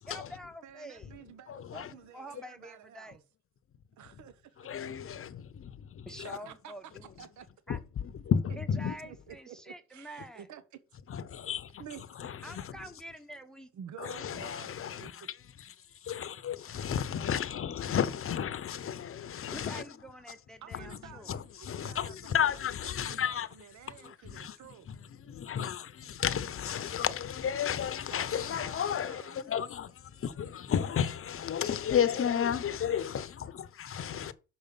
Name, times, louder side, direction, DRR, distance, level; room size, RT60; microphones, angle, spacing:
voice 1, 0.1-1.1 1.7-3.2 6.1-7.1 7.7-7.8 8.6-10.5 12.4-13.7 19.5-21.3 24.0-24.1 25.5-25.7 29.4-29.5, equal, ahead, 0.9 m, -47 dB
voice 2, 0.6-3.2 4.0-4.6 6.2-6.7 7.2-7.5 9.0-10.6 11.2-11.3 11.8-12.0 13.7-15.3 20.6-24.9 28.1-29.4 31.9-32.6, right 9 dB, 70° right, 1.0 m, -50 dB
voice 3, 1.5-1.9 4.6-6.4 7.7-9.0 11.1-11.8 12.2-12.8 14.0-15.3 15.6-15.7 16.0-19.8 20.7-21.0 21.3-23.5 24.0-24.6 24.9-34.3, left 8 dB, 45° left, 0.8 m, -33 dB
6.2 x 5.4 x 6.9 m
cardioid pair, 90°, 30 cm